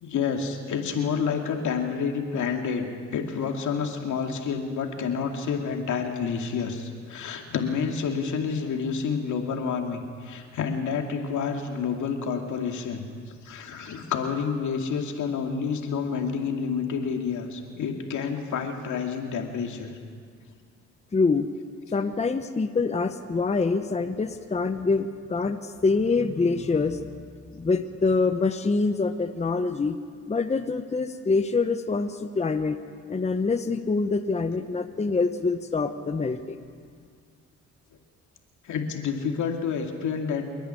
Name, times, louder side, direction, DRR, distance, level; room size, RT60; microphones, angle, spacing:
voice 1, 0.0-13.0 13.4-20.0 38.6-40.5, left 6 dB, 75° left, 3 dB, 2.6 m, -29 dB
voice 2, 21.1-21.5 21.9-27.2 27.5-30.0 30.3-32.8 33.1-36.6, left 4 dB, 20° left, 8 dB, 0.9 m, -25 dB
27.5 x 10.5 x 9.7 m, 2.1 s
cardioid pair, 90°, 30 cm